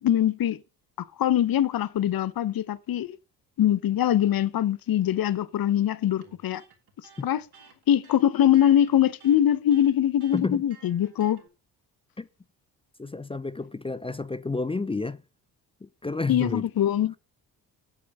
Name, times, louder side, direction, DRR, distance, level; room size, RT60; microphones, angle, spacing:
voice 1, 0.0-0.6 1.2-3.2 3.6-6.6 7.2-7.4 7.9-11.4 16.3-17.2, left 11 dB, 45° left, 0.9 m, -23 dB
Electric guitar, 6.2-11.5, right 6 dB, 50° right, 3.2 m, -54 dB
voice 2, 10.3-10.6 12.2-12.3 13.0-15.2 15.8-16.7, left 3 dB, 10° left, 0.5 m, -30 dB
8.6 x 8.0 x 5.3 m
hypercardioid pair, 55°, 48 cm